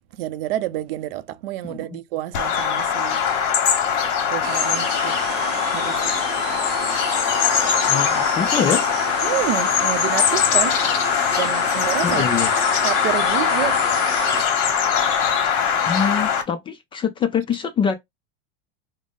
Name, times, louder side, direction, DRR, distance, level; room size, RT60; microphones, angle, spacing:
voice 1, 0.1-3.3 4.3-5.2 5.7-6.1 9.2-10.8 11.4-12.2 12.8-13.8, right 14 dB, 70° right, 0.5 m, -28 dB
voice 2, 1.6-2.0 7.9-8.8 12.0-12.5 15.9-17.9, left 7 dB, 15° left, 0.3 m, -24 dB
Bird vocalization bird call bird song, 2.3-16.4, left 7 dB, 55° left, 1.1 m, -21 dB
sound 1, 4.4-14.4, right 9 dB, 35° right, 0.7 m, -33 dB
3.7 x 2.0 x 3.5 m
supercardioid pair, 140°, 30 cm